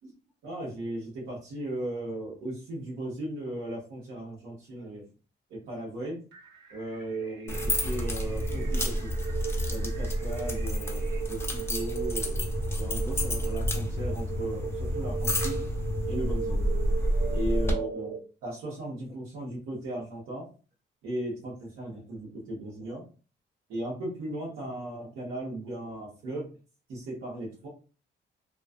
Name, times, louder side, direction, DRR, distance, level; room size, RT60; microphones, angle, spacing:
voice 1, 0.4-5.1 5.5-6.2 6.7-9.1 9.7-15.6 16.1-16.6 17.3-18.1 18.4-20.5 21.0-23.0 23.7-26.5 26.9-27.7, right 1 dB, 85° right, -5 dB, 0.9 m, -37 dB
sound 1, 6.3-11.2, right 3 dB, 60° right, 1.0 m, -53 dB
sound 2, 7.0-18.2, right 8 dB, 40° right, 0.5 m, -38 dB
sound 3, 7.5-17.7, equal, 10° left, 0.6 m, -29 dB
2.3 x 2.3 x 2.4 m, 0.36 s
cardioid pair, 90°, 20 cm